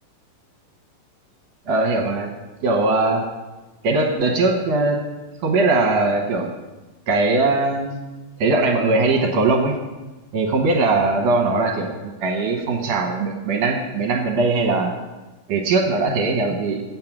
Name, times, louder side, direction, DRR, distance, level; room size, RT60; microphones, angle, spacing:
voice 1, 1.7-2.3 2.6-3.3 3.8-5.0 5.4-6.5 7.1-8.0 8.4-9.8 10.3-14.9 15.5-16.8, right 3 dB, 65° right, 1 dB, 2.1 m, -20 dB
8.5 x 7.3 x 5.9 m, 1.1 s
omnidirectional pair, 3.7 m